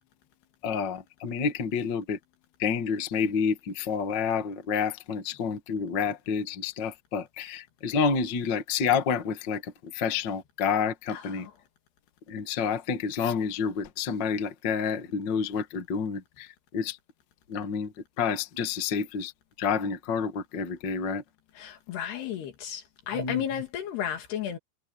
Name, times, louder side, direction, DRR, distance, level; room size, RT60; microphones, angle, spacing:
voice 1, 0.6-2.2 2.6-11.5 12.3-17.0 17.5-19.3 19.6-21.2 23.1-23.4, left 6 dB, 50° left, 1.4 m, -29 dB
voice 2, 11.1-11.5 21.6-24.6, left 9 dB, 75° left, 4.3 m, -33 dB
omnidirectional pair, 4.8 m